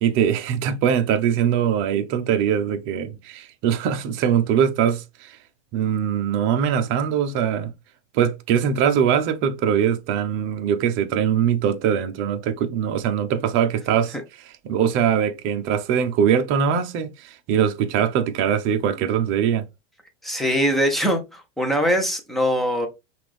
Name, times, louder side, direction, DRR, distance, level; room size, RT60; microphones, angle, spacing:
voice 1, 0.0-5.4 5.7-7.7 8.1-14.2 14.6-19.6, right 8 dB, 35° right, 0.7 m, -22 dB
voice 2, 20.2-22.9, equal, ahead, 0.8 m, -22 dB
5.7 x 2.6 x 3.3 m
supercardioid pair, 140°, 34 cm